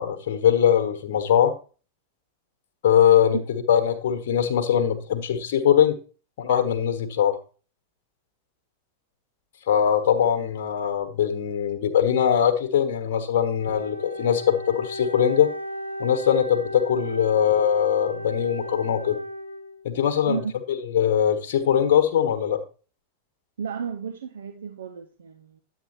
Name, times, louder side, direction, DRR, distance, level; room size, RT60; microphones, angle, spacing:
voice 1, 0.0-1.5 2.8-6.0 6.4-7.4 9.7-15.5 16.0-19.2 19.8-20.4 20.7-22.6, left 9 dB, 55° left, 1.3 m, -21 dB
Wind instrument woodwind instrument, 13.6-20.0, equal, 80° left, 0.9 m, -35 dB
voice 2, 23.6-25.6, right 6 dB, 65° right, 0.8 m, -33 dB
10.0 x 8.2 x 3.1 m
figure-of-eight pair, 90°, 0 cm